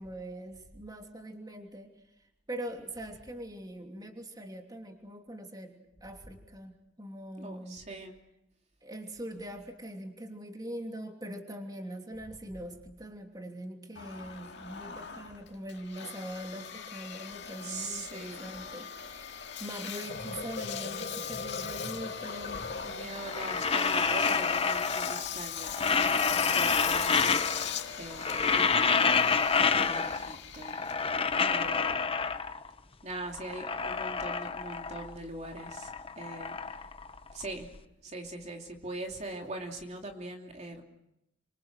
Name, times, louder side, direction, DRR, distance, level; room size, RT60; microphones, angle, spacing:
voice 1, 0.0-1.9 2.5-7.8 8.8-19.3 19.6-22.6, right 1 dB, 20° right, 3 dB, 3.0 m, -42 dB
voice 2, 7.4-8.1 17.6-18.5 22.8-27.6 28.0-29.1 29.5-30.8 31.5-32.1 33.0-36.9 37.3-37.7 38.0-40.8, right 2 dB, 35° right, 2 dB, 3.0 m, -42 dB
Engine, 14.0-32.4, left 8 dB, 65° left, 2.2 m, -40 dB
sound 1, 19.8-23.7, left 3 dB, 50° left, 4.4 m, -41 dB
sound 2, 23.2-25.3 25.6-27.8 28.1-30.3 30.6-32.7 33.2-35.2 35.4-37.6, left 5 dB, 30° left, 1.0 m, -28 dB
29.0 x 26.5 x 6.5 m, 0.86 s
head